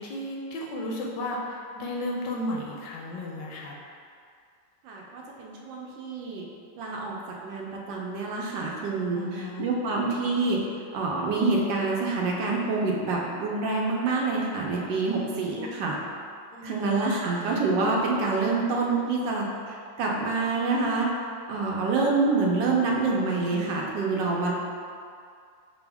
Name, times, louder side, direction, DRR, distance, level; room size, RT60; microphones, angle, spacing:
voice 1, 0.0-3.7 9.1-9.7 15.0-15.3 15.5-15.7 16.5-16.9, left 1 dB, 75° left, -2 dB, 1.2 m, -34 dB
voice 2, 4.8-6.4 6.8-10.6 10.9-15.9 16.6-21.1 21.5-24.5, right 3 dB, 80° right, -2 dB, 1.3 m, -27 dB
6.0 x 2.0 x 3.4 m, 2.3 s
omnidirectional pair, 2.0 m